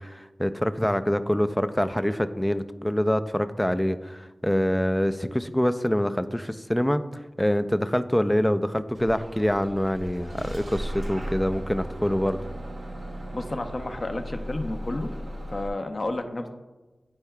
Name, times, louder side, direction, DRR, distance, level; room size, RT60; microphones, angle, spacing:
voice 1, 0.0-7.0 7.4-12.4, equal, 10° left, 11 dB, 0.4 m, -25 dB
Bus / Engine starting, 8.9-15.7, equal, 80° right, 0.9 m, -36 dB
voice 2, 13.3-15.1 15.5-16.5, left 2 dB, 50° left, 6 dB, 0.7 m, -31 dB
9.8 x 4.5 x 2.2 m, 1.1 s
cardioid pair, 40°, 0 cm